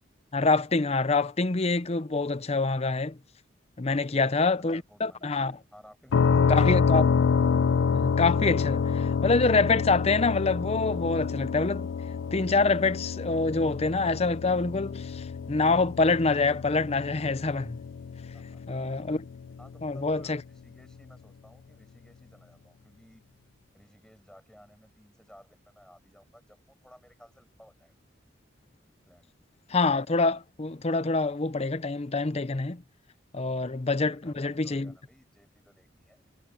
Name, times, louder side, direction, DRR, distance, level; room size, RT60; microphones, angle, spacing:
voice 1, 0.3-3.2 3.8-5.6 6.5-7.1 7.9-11.9 12.3-17.8 18.7-19.2 19.8-20.4 29.7-32.8 33.3-34.9, left 3 dB, 35° left, 0.7 m, -26 dB
voice 2, 3.9-6.9 18.3-18.8 19.6-23.2 23.7-27.9 29.0-29.3 33.4-36.3, equal, 5° left, 6.0 m, -57 dB
sound 1, 6.1-19.8, left 6 dB, 85° left, 0.4 m, -28 dB
head